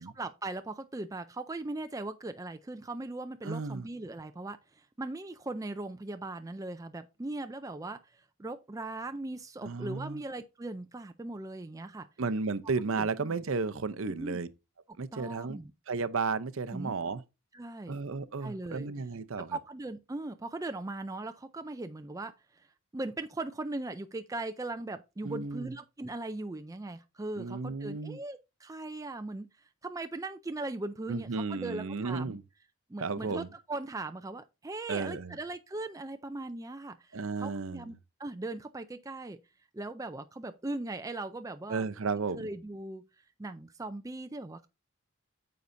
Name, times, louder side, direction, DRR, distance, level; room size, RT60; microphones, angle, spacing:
voice 1, 0.2-12.1 13.0-13.4 14.0-14.4 14.9-15.7 16.7-16.9 17.5-18.0 18.4-18.9 19.5-22.7 22.9-29.5 29.8-32.4 32.9-37.9 38.2-39.4 39.7-41.8 42.3-43.0 43.4-44.7, right 2 dB, 15° right, 0.4 m, -39 dB
voice 2, 3.4-3.9 9.6-10.2 12.2-14.5 15.0-15.6 15.9-17.2 17.9-19.6 25.2-25.7 27.4-28.2 31.1-32.4 33.0-33.5 34.9-35.4 37.1-37.9 41.7-42.5, right 4 dB, 65° right, 0.6 m, -33 dB
9.3 x 6.8 x 2.6 m
head